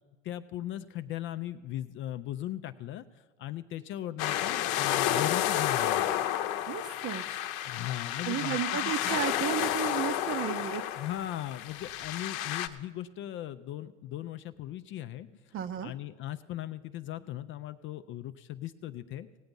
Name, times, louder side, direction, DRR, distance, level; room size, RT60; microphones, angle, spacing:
voice 1, 0.2-6.2 7.6-9.2 10.9-15.6 15.8-19.3, left 13 dB, 35° left, 10 dB, 0.4 m, -38 dB
sound 1, 4.2-12.7, left 12 dB, 60° left, 0.8 m, -31 dB
voice 2, 6.7-7.2 8.2-10.8 15.5-15.9, right 10 dB, 35° right, 13 dB, 0.7 m, -33 dB
18.0 x 7.8 x 5.3 m, 1.3 s
hypercardioid pair, 100°, 36 cm